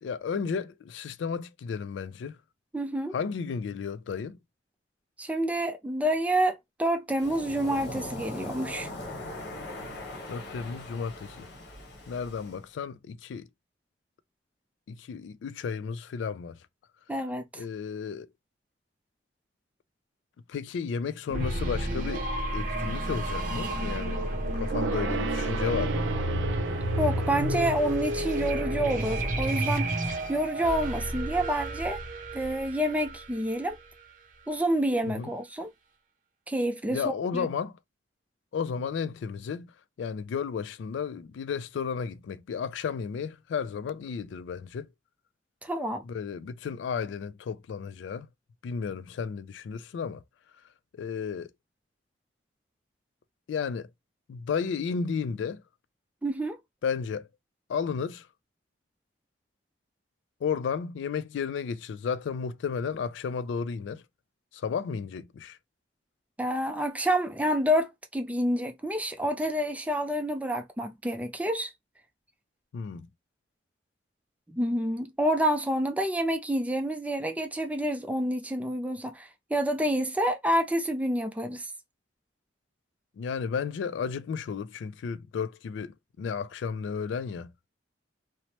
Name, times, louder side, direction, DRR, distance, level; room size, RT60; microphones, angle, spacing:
voice 1, 0.0-2.4 3.1-4.4 10.3-11.5 12.1-13.5 14.9-16.6 17.6-18.3 20.5-22.3 22.5-24.2 24.5-26.1 35.1-35.3 36.9-37.8 38.5-39.7 40.0-44.9 46.0-48.3 48.6-50.2 51.0-51.5 53.5-53.9 54.3-55.6 56.8-57.3 57.7-58.3 60.4-64.0 64.5-65.6 72.7-73.1 83.2-87.5, left 6 dB, 80° left, 0.3 m, -33 dB
voice 2, 2.7-3.2 5.2-8.9 17.1-17.6 27.0-29.9 30.3-32.0 32.3-33.8 34.5-35.7 36.5-37.5 45.6-46.0 56.2-56.6 66.4-71.7 74.5-81.7, right 1 dB, 10° right, 0.4 m, -28 dB
Waves surf, 7.2-12.6, left 1 dB, 60° left, 0.9 m, -40 dB
sound 1, 21.3-34.0, right 1 dB, 45° right, 0.6 m, -31 dB
Gong, 24.7-30.6 30.9-31.0, right 5 dB, 90° right, 0.4 m, -36 dB
3.0 x 2.0 x 2.8 m
head